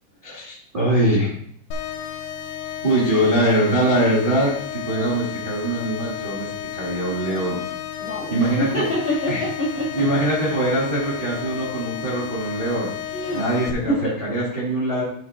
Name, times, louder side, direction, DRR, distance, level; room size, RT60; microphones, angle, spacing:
voice 1, 0.2-1.3 2.8-7.6 8.3-8.9 9.3-9.4 9.9-12.9 13.3-15.0, right 1 dB, 30° right, -6 dB, 0.9 m, -22 dB
sound 1, 1.7-13.7, left 10 dB, 75° left, 2.4 m, -33 dB
voice 2, 8.0-10.0 13.1-13.4 13.9-14.0, equal, 45° left, -8 dB, 0.7 m, -26 dB
12.5 x 4.4 x 3.7 m, 0.64 s
omnidirectional pair, 5.5 m